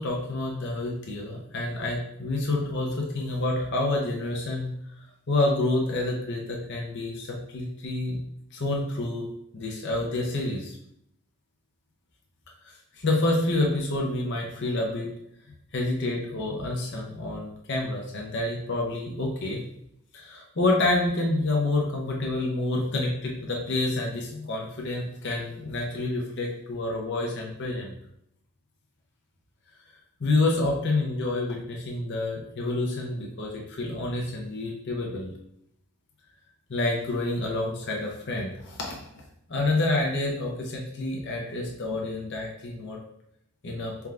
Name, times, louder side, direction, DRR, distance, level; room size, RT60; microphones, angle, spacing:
voice 1, 0.0-4.7 5.3-8.2 8.5-9.3 9.5-10.8 12.9-15.1 15.7-19.6 20.1-27.9 30.2-35.3 36.7-39.0 39.5-43.0 43.6-43.9, left 2 dB, 50° left, -1 dB, 0.7 m, -28 dB
4.4 x 3.5 x 2.4 m, 0.73 s
head